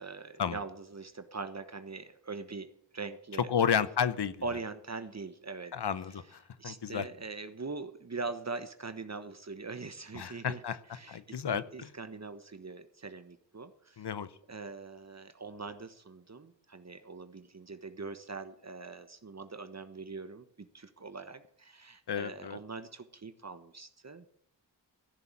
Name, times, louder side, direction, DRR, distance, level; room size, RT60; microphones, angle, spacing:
voice 1, 0.0-3.5 4.4-5.7 6.1-6.3 6.6-10.6 10.9-14.0 14.5-24.3, right 4 dB, 40° right, 10 dB, 1.2 m, -42 dB
voice 2, 3.5-4.3 5.7-6.2 6.6-7.0 10.2-10.8 11.1-11.9 14.0-14.3 22.1-22.6, left 7 dB, 65° left, 15 dB, 1.0 m, -31 dB
15.0 x 7.0 x 8.5 m, 0.68 s
cardioid pair, 50°, 43 cm